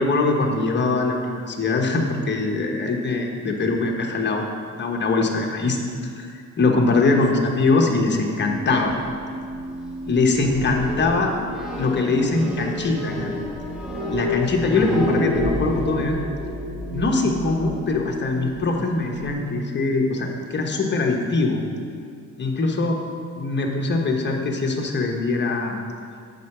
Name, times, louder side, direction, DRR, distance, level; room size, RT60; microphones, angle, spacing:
voice 1, 0.0-4.5 4.8-5.8 6.2-6.3 6.6-8.9 10.1-11.3 11.8-13.3 14.1-16.2 16.9-21.6 22.4-23.0 23.4-25.8, left 3 dB, 35° left, 1 dB, 1.1 m, -22 dB
sound 1, 8.4-19.3, left 1 dB, ahead, 1.3 m, -30 dB
8.1 x 4.5 x 6.0 m, 2.2 s
cardioid pair, 90°, 30 cm